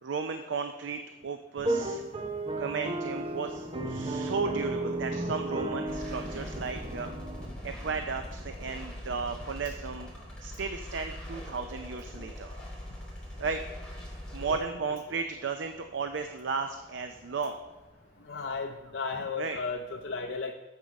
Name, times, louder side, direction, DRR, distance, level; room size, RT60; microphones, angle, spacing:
voice 1, 0.0-2.0 2.6-7.1 7.6-10.1 10.4-12.6 13.4-13.6 14.3-17.6 19.4-19.6, right 5 dB, 80° right, 7 dB, 0.5 m, -34 dB
sound 1, 1.6-7.5, right 2 dB, 30° right, 0.7 m, -34 dB
Thunder, 3.1-19.0, right 1 dB, 50° right, 3.1 m, -50 dB
sound 2, 5.9-14.6, left 1 dB, 5° left, 2.7 m, -42 dB
voice 2, 18.3-20.5, left 4 dB, 70° left, 2 dB, 0.5 m, -34 dB
7.4 x 7.3 x 5.2 m, 1.1 s
head